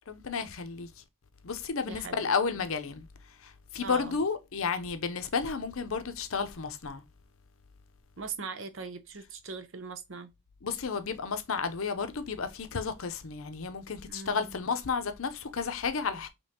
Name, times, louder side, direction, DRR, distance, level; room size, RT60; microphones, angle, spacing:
voice 1, 0.1-0.9 1.4-3.1 3.4-7.0 10.6-16.3, left 5 dB, 75° left, 0.6 m, -32 dB
voice 2, 1.9-2.3 3.8-4.2 8.2-10.3 14.1-14.6, right 4 dB, 65° right, 0.7 m, -40 dB
5.2 x 3.0 x 2.8 m
head